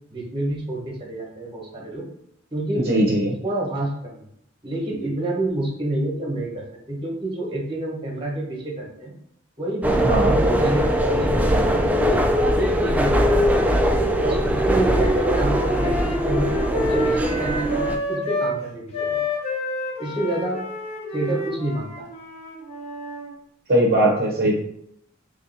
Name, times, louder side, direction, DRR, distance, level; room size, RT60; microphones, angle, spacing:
voice 1, 0.1-2.1 2.5-2.9 3.4-4.2 4.6-9.1 9.6-12.2 12.6-13.5 14.2-19.2 20.0-20.6 21.1-22.1, right 1 dB, 25° right, -1 dB, 1.1 m, -28 dB
voice 2, 2.9-3.3 10.0-10.3 23.7-24.6, right 1 dB, 50° right, -2 dB, 0.6 m, -19 dB
sound 1, 9.8-18.0, equal, 10° right, 0.3 m, -21 dB
Wind instrument woodwind instrument, 14.7-18.6 18.9-23.3, left 1 dB, 35° left, 0.8 m, -29 dB
3.2 x 2.7 x 4.0 m, 0.74 s
head